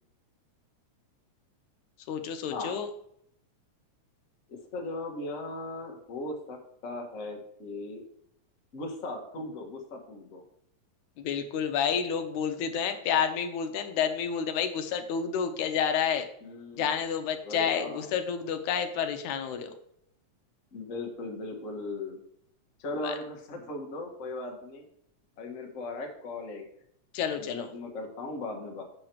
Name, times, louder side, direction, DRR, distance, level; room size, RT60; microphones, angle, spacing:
voice 1, 2.1-2.9 11.2-16.3 16.8-19.7 23.0-23.1 27.1-27.7, left 7 dB, 80° left, 7 dB, 2.1 m, -29 dB
voice 2, 4.5-6.6 6.8-8.0 8.7-10.4 16.4-16.9 17.4-18.1 20.7-22.2 22.8-24.8 25.4-26.6 27.3-28.8, left 2 dB, 35° left, 1 dB, 1.3 m, -38 dB
8.4 x 6.5 x 4.5 m, 0.71 s
omnidirectional pair, 3.4 m